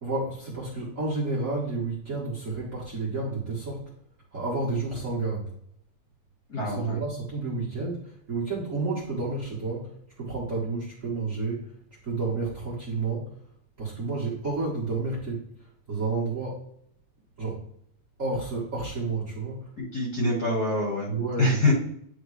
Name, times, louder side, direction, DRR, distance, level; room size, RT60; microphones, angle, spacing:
voice 1, 0.0-3.8 4.3-5.5 6.6-11.7 12.0-13.3 13.8-16.6 17.4-17.6 18.2-19.7 21.1-21.7, right 3 dB, 35° right, -6 dB, 1.5 m, -30 dB
voice 2, 6.5-7.0 19.8-21.1 21.4-21.7, left 2 dB, 40° left, -3 dB, 1.8 m, -25 dB
9.9 x 3.6 x 3.2 m, 0.67 s
omnidirectional pair, 3.3 m